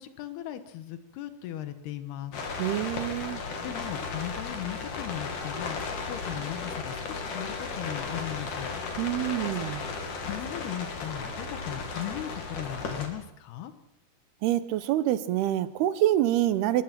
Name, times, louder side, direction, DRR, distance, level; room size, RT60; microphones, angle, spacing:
voice 1, 0.0-2.3 3.6-8.8 10.3-13.7, left 11 dB, 90° left, 10 dB, 3.3 m, -37 dB
sound 1, 2.3-13.1, left 4 dB, 55° left, 4.1 m, -35 dB
voice 2, 2.6-3.4 9.0-9.8 14.4-16.8, right 13 dB, 85° right, 13 dB, 3.0 m, -26 dB
25.0 x 20.5 x 6.0 m, 0.77 s
omnidirectional pair, 4.5 m